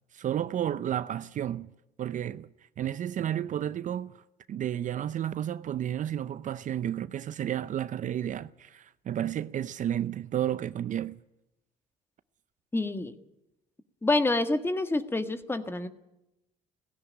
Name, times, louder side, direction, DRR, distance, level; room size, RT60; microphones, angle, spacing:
voice 1, 0.1-1.7 2.0-2.5 2.8-4.1 4.5-11.2, right 10 dB, 50° right, 0.6 m, -32 dB
voice 2, 12.7-13.1 14.0-15.9, left 2 dB, 15° left, 1.6 m, -27 dB
17.5 x 16.0 x 10.0 m
cardioid pair, 110°, 17 cm